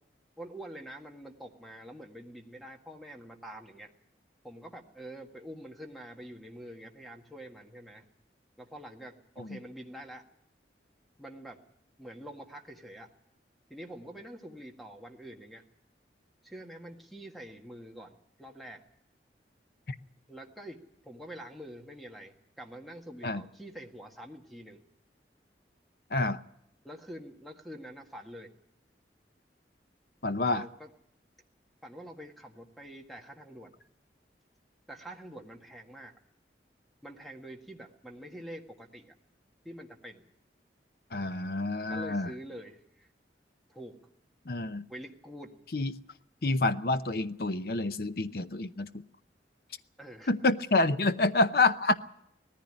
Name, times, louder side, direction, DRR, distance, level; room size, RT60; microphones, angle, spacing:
voice 1, 0.4-3.9 4.4-8.0 8.6-10.2 11.2-11.6 12.0-13.1 13.7-15.6 16.4-18.8 20.3-20.8 21.0-24.8 26.8-28.5 30.4-30.9 31.8-33.8 34.9-36.1 37.0-39.2 39.6-40.3 41.9-43.1 43.7-44.0 44.9-45.5 50.0-50.3, right 1 dB, ahead, 3 dB, 1.7 m, -46 dB
voice 2, 30.2-30.6 41.1-42.3 44.5-44.9 45.7-45.9 46.4-49.0 50.3-51.9, left 2 dB, 55° left, 11 dB, 0.8 m, -28 dB
19.0 x 14.5 x 10.0 m, 0.74 s
head